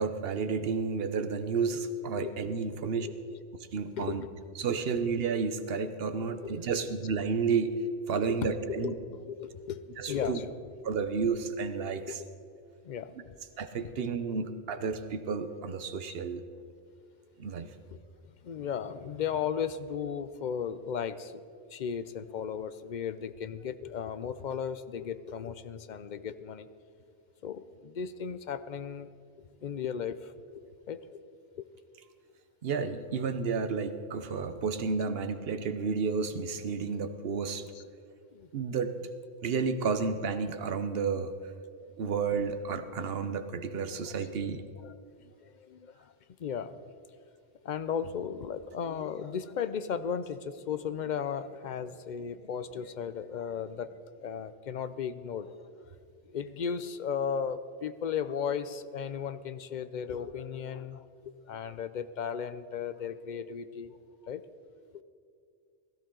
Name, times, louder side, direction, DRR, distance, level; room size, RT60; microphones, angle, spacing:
voice 1, 0.0-3.1 3.7-4.2 4.6-7.7 8.1-8.9 10.0-10.4 10.8-12.2 13.6-16.4 17.4-17.7 32.6-37.6 38.5-38.9 39.4-41.3 42.0-44.6, right 5 dB, 60° right, 10 dB, 1.0 m, -31 dB
voice 2, 3.0-3.4 4.0-4.3 6.1-6.9 8.4-9.8 10.1-10.5 12.0-12.3 12.8-13.1 16.1-16.2 18.4-21.4 21.7-26.7 27.4-29.1 29.6-31.2 31.6-31.7 37.7-37.8 38.3-38.5 43.9-44.3 44.8-45.0 45.4-45.9 46.4-46.8 47.6-55.5 56.3-64.0 64.2-64.4, left 7 dB, 55° left, 13 dB, 0.6 m, -36 dB
16.5 x 14.0 x 3.8 m, 2.3 s
omnidirectional pair, 1.1 m